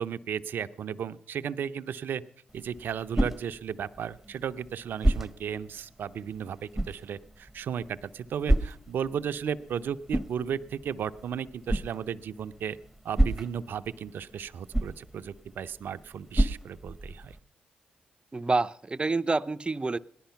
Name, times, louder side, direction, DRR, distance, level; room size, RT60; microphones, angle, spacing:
voice 1, 0.0-2.2 2.5-12.8 13.0-17.4, right 8 dB, 70° right, 12 dB, 0.6 m, -35 dB
sound 1, 2.5-17.4, right 1 dB, 5° right, 1.0 m, -32 dB
voice 2, 18.3-20.0, right 3 dB, 30° right, 13 dB, 0.6 m, -27 dB
18.0 x 11.5 x 5.8 m, 0.66 s
supercardioid pair, 45°, 4 cm